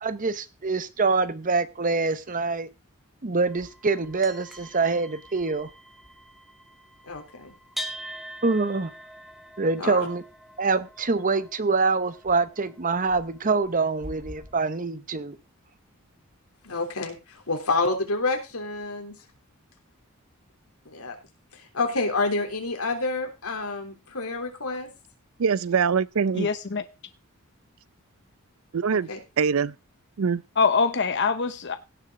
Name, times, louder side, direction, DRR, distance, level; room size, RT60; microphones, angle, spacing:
voice 1, 0.0-2.7 3.2-5.7 8.4-8.9 9.6-10.2 10.6-15.4, right 4 dB, 40° right, 0.9 m, -25 dB
sound 1, 3.5-14.6, equal, ahead, 1.6 m, -43 dB
voice 2, 7.1-7.5 9.8-10.1 16.6-19.2 20.9-21.2 21.5-24.9 28.9-29.2, left 3 dB, 85° left, 3.3 m, -28 dB
voice 3, 25.4-26.5 28.7-29.1 29.4-29.7 30.2-30.4, right 6 dB, 70° right, 0.5 m, -23 dB
voice 4, 26.3-26.8 30.6-31.8, left 5 dB, 55° left, 0.8 m, -23 dB
17.0 x 6.8 x 3.8 m
head